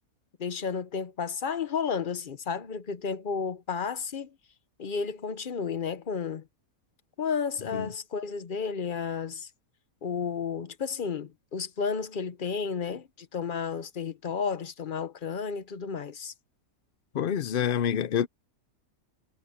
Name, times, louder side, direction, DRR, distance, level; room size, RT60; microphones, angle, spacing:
voice 1, 0.4-4.4 4.8-6.5 7.2-9.5 10.0-16.3, left 6 dB, 40° left, 1.0 m, -32 dB
voice 2, 17.1-18.3, left 9 dB, 55° left, 0.6 m, -27 dB
omnidirectional pair, 1.5 m